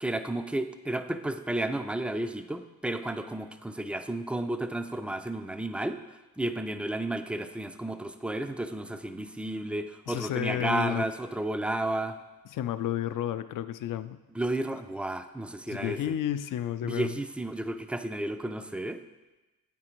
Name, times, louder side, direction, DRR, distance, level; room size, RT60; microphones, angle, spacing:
voice 1, 0.0-6.0 6.4-12.2 14.3-16.0 16.8-19.0, right 1 dB, 5° right, 9 dB, 0.3 m, -32 dB
voice 2, 10.1-11.0 12.5-14.2 15.7-17.2, left 11 dB, 55° left, 13 dB, 0.4 m, -31 dB
8.7 x 3.7 x 4.5 m, 1.1 s
cardioid pair, 65°, 38 cm